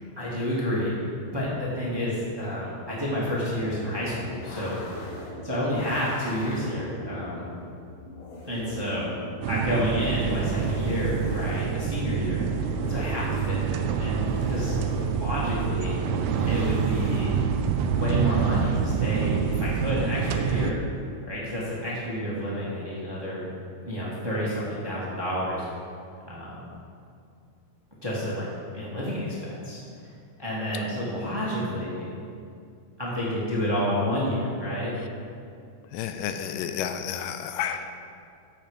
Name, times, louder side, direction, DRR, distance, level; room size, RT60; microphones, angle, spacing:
voice 1, 0.2-1.0 1.3-7.5 8.5-9.1 9.5-14.7 15.1-15.9 16.5-17.4 17.9-20.8 21.3-23.5 23.8-25.7 26.3-26.6 28.0-28.5 28.7-29.8 30.4-32.1 33.0-34.9, equal, 10° right, -7 dB, 1.5 m, -30 dB
sound 1, 3.5-17.2, left 1 dB, 65° left, 2.8 m, -40 dB
sound 2, 9.4-20.7, right 7 dB, 80° right, 1.8 m, -26 dB
voice 2, 35.9-37.9, left 8 dB, 85° left, 8 dB, 2.2 m, -31 dB
14.0 x 6.1 x 5.2 m, 2.4 s
omnidirectional pair, 3.9 m